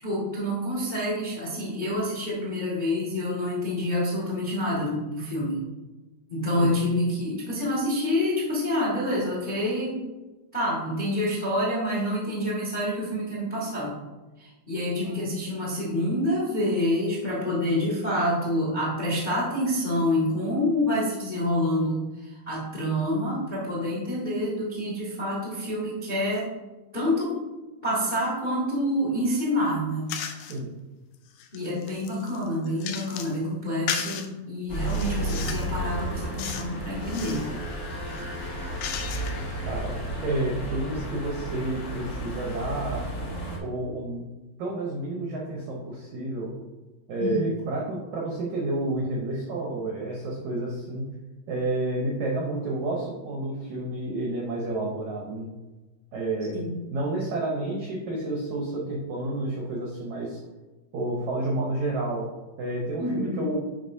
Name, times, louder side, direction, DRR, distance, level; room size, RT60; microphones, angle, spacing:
voice 1, 0.0-5.6 6.3-10.0 10.5-13.9 14.4-26.5 26.9-27.4 27.8-30.1 31.5-37.4 47.2-47.6 56.5-56.8 63.0-63.5, left 1 dB, 75° left, -6 dB, 0.4 m, -27 dB
sound 1, 30.1-30.6 31.1-33.4 33.9-34.3 34.8-35.7 36.4-36.7 37.0-37.5 38.1-39.5, left 8 dB, 90° left, 1.9 m, -35 dB
sound 2, 34.7-43.6, right 1 dB, 40° left, 1.6 m, -32 dB
voice 2, 39.6-43.1 43.6-44.2 44.6-46.6 47.1-51.1 51.5-55.5 56.1-60.4 60.9-62.3 62.6-63.6, right 2 dB, 80° right, -2 dB, 1.6 m, -30 dB
8.9 x 5.1 x 2.7 m, 1.2 s
omnidirectional pair, 4.7 m